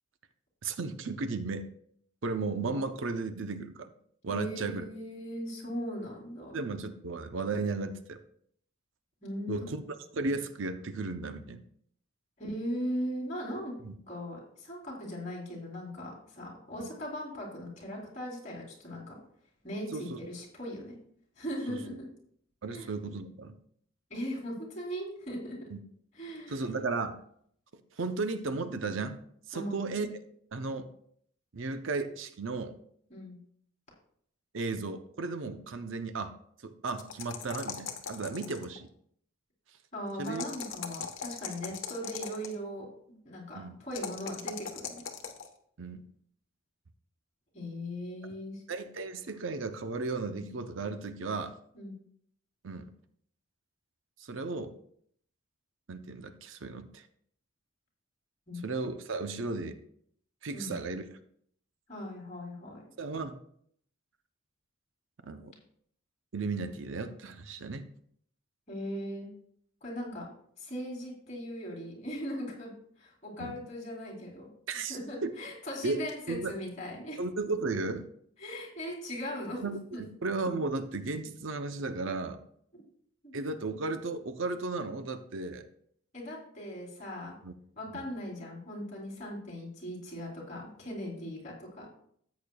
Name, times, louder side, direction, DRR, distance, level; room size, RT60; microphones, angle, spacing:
voice 1, 0.6-1.7 2.2-3.9 4.2-4.8 6.5-8.2 9.5-9.8 10.1-11.6 13.8-14.0 16.8-16.9 19.9-20.2 21.7-21.8 22.6-23.5 25.7-25.8 26.5-27.2 28.0-29.2 29.5-30.1 30.5-30.9 31.5-32.7 34.5-36.3 36.6-38.9 40.2-40.5 43.5-43.8 45.8-46.0 48.7-51.6 52.6-52.9 54.2-54.7 55.9-57.0 58.6-59.8 60.4-61.2 63.0-63.4 65.2-65.5 66.3-67.9 73.4-73.6 74.7-75.3 75.8-76.0 76.3-76.5 77.2-78.1 79.6-82.4 83.3-85.7 87.4-87.5 87.9-88.0, right 3 dB, 65° right, 9 dB, 0.6 m, -35 dB
voice 2, 4.3-6.5 9.2-9.5 12.4-13.7 14.1-19.2 19.6-20.9 21.4-22.1 22.7-22.9 24.1-25.6 26.1-26.6 29.5-30.1 33.1-33.4 39.9-45.0 47.5-48.6 51.7-52.0 58.5-58.6 60.5-60.7 61.9-62.9 68.7-69.3 69.8-70.3 70.6-72.7 73.0-74.5 74.9-77.2 78.4-79.6 79.9-80.0 82.7-82.8 83.2-83.3 86.1-87.3 87.8-91.9, equal, 35° left, -2 dB, 3.3 m, -39 dB
sound 1, 36.9-38.8 40.2-42.5 43.9-45.5, left 7 dB, 70° left, 1.1 m, -39 dB
13.5 x 8.4 x 2.3 m, 0.66 s
head